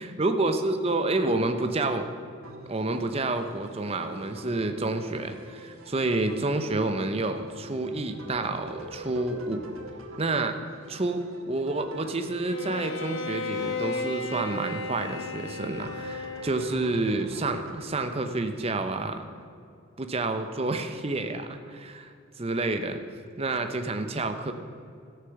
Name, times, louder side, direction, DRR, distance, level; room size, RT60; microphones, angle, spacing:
voice 1, 0.2-2.1 2.7-9.7 10.2-10.6 10.9-19.3 20.0-23.0 23.4-24.5, right 2 dB, 30° right, 7 dB, 0.6 m, -29 dB
sound 1, 2.4-17.8, right 1 dB, 85° right, 1.4 m, -46 dB
Bowed string instrument, 12.4-16.9, left 3 dB, 70° left, 0.9 m, -34 dB
13.0 x 6.7 x 7.0 m, 2.4 s
head